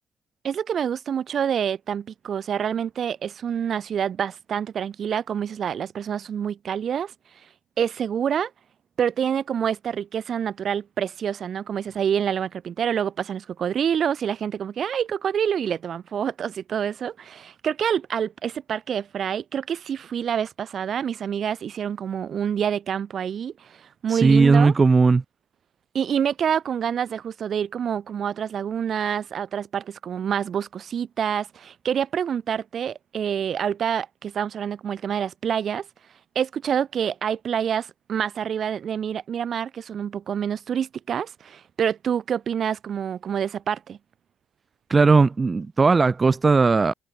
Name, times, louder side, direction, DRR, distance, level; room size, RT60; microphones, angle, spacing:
voice 1, 0.4-7.1 7.8-8.5 9.0-24.7 25.9-35.9 36.4-44.0, right 8 dB, 65° right, 5.2 m, -27 dB
voice 2, 24.1-25.2 44.9-46.9, right 4 dB, 35° right, 2.4 m, -17 dB
cardioid pair, 75°, 0 cm